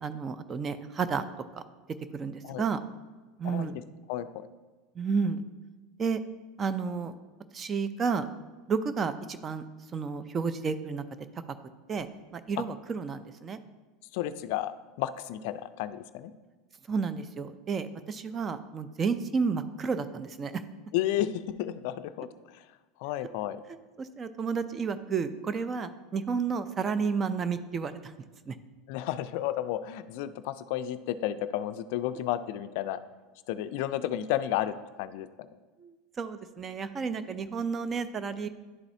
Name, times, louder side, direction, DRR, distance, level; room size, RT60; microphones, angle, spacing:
voice 1, 0.0-1.2 1.5-1.6 2.1-2.8 3.4-3.8 5.0-5.4 6.0-6.2 6.6-7.1 7.5-8.3 8.7-9.7 9.9-11.0 11.9-12.1 12.3-13.6 16.9-20.6 24.0-28.1 28.5-28.6 35.8-38.5, right 5 dB, 25° right, 12 dB, 0.4 m, -31 dB
voice 2, 3.4-3.8 4.1-4.5 12.6-12.7 14.1-16.3 20.9-22.3 23.0-23.6 28.9-33.0 33.5-35.5, left 12 dB, 65° left, 12 dB, 0.3 m, -32 dB
11.0 x 4.1 x 2.6 m, 1.3 s
supercardioid pair, 125°, 0 cm